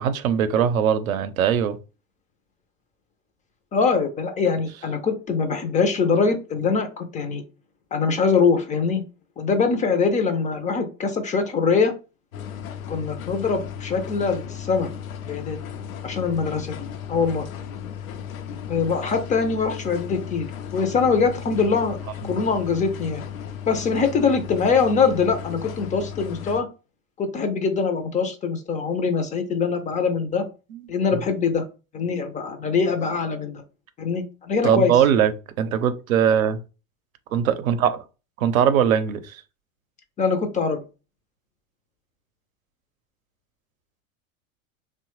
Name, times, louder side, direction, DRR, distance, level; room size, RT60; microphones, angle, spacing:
voice 1, 0.0-1.8 22.2-22.4 30.7-30.8 34.6-35.3 35.6-36.6 37.3-38.0 38.4-39.4, right 8 dB, 80° right, 0.6 m, -21 dB
voice 2, 3.7-7.4 7.9-9.0 9.4-11.9 12.9-14.9 15.3-15.6 16.0-17.4 18.7-22.0 22.2-23.2 23.7-26.7 27.2-30.5 30.9-31.7 31.9-33.6 34.0-34.9 40.2-40.8, left 5 dB, 20° left, 0.3 m, -23 dB
sound 1, 12.3-26.6, left 8 dB, 80° left, 0.5 m, -35 dB
2.9 x 2.1 x 3.0 m
hypercardioid pair, 85°, 41 cm